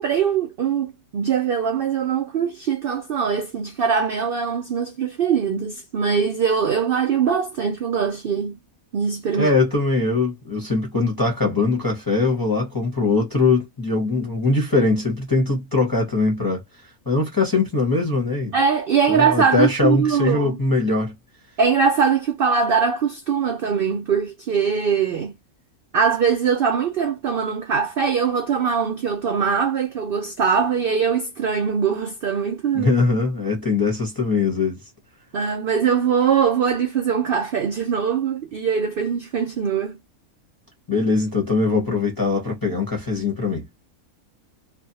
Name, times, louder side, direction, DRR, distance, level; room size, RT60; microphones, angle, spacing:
voice 1, 0.0-8.6 8.9-9.6 18.5-20.6 21.6-25.3 25.9-32.9 35.3-39.9, right 6 dB, 70° right, 0.5 m, -22 dB
voice 2, 9.3-16.6 17.1-18.6 19.1-21.1 32.7-34.8 40.9-43.7, left 3 dB, 20° left, 0.7 m, -21 dB
2.5 x 2.2 x 2.7 m
omnidirectional pair, 1.5 m